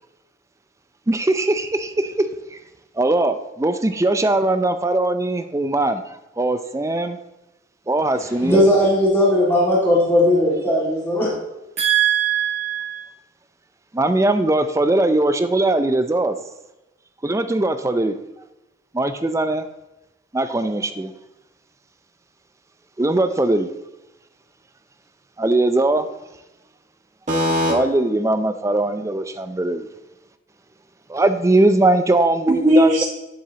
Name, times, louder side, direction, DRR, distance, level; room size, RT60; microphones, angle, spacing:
voice 1, 1.1-2.6 3.0-7.2 7.9-8.7 9.9-10.0 13.9-16.3 17.2-18.1 18.9-19.6 20.3-21.1 23.0-23.7 25.4-26.1 27.7-29.9 31.1-33.0, right 2 dB, 15° right, 9 dB, 0.4 m, -20 dB
voice 2, 8.4-11.3, left 1 dB, 10° left, -7 dB, 2.0 m, -17 dB
voice 3, 11.8-13.0 27.3-27.7 32.5-33.0, right 3 dB, 35° right, -8 dB, 1.6 m, -18 dB
10.5 x 7.0 x 2.8 m, 0.98 s
head